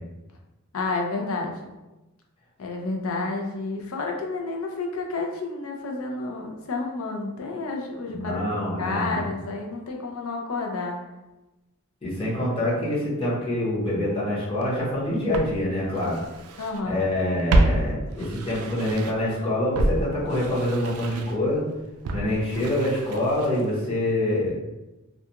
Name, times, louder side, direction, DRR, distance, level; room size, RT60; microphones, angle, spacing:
voice 1, 0.7-1.7 2.6-8.4 8.8-11.0 16.6-17.0, left 3 dB, 75° left, 1 dB, 0.5 m, -30 dB
voice 2, 8.1-9.2 12.0-16.2 16.8-21.7 22.1-24.6, left 1 dB, 25° left, -7 dB, 0.8 m, -26 dB
Walk footsteps, 14.6-14.7 15.3-16.8 17.1-19.3 19.7-23.8 24.1-24.2, right 1 dB, 85° right, 0.3 m, -28 dB
2.4 x 2.3 x 2.8 m, 1.0 s
head